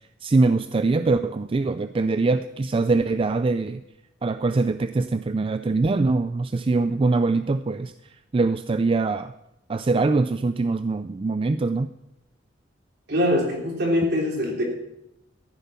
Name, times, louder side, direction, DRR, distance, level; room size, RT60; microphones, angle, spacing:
voice 1, 0.2-3.8 4.2-7.9 8.3-9.3 9.7-11.9, right 3 dB, 30° right, 11 dB, 0.4 m, -23 dB
voice 2, 13.1-14.6, left 1 dB, 60° right, 0 dB, 3.6 m, -23 dB
14.0 x 9.8 x 5.7 m, 0.86 s
head